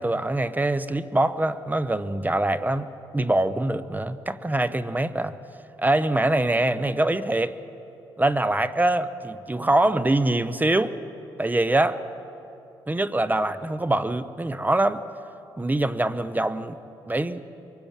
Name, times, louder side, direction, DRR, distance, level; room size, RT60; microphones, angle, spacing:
voice 1, 0.0-5.4 5.8-7.6 8.2-11.0 11.4-12.0 12.9-15.0 15.6-16.8 17.1-17.4, right 2 dB, 15° right, 11 dB, 1.0 m, -24 dB
24.0 x 19.5 x 7.4 m, 2.8 s
hypercardioid pair, 45°, 11 cm